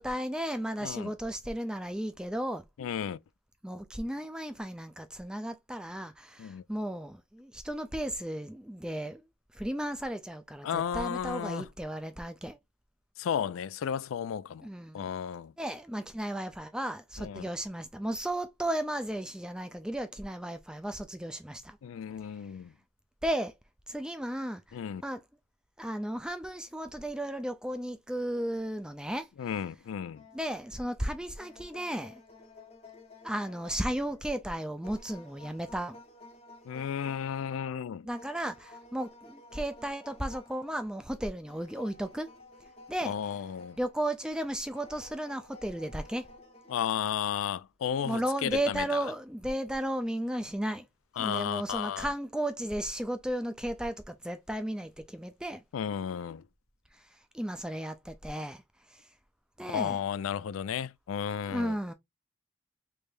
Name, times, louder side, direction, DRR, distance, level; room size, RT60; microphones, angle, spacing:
voice 1, 0.0-2.6 3.6-9.2 9.5-12.6 14.6-15.1 15.6-21.8 23.2-23.5 23.9-25.2 25.8-29.3 30.3-32.2 33.2-36.0 38.0-42.3 42.9-43.1 43.8-46.3 48.0-50.9 51.2-55.6 56.9-57.0 57.3-58.6 58.9-59.0 59.6-60.0 61.5-61.9, right 1 dB, 5° right, 0.4 m, -34 dB
voice 2, 2.8-3.2 6.4-6.6 10.6-11.7 13.2-14.7 14.9-15.5 17.2-17.4 21.8-22.7 24.7-25.0 29.4-30.2 36.6-38.1 43.0-43.8 46.7-49.0 51.2-52.1 55.7-56.4 59.7-61.8, left 8 dB, 90° left, 0.3 m, -33 dB
sound 1, 30.2-30.9 31.4-34.3 34.8-37.8 38.2-40.8 41.5-44.2 44.7-47.4 48.0-48.2, left 2 dB, 30° left, 0.8 m, -53 dB
3.3 x 3.3 x 2.5 m
head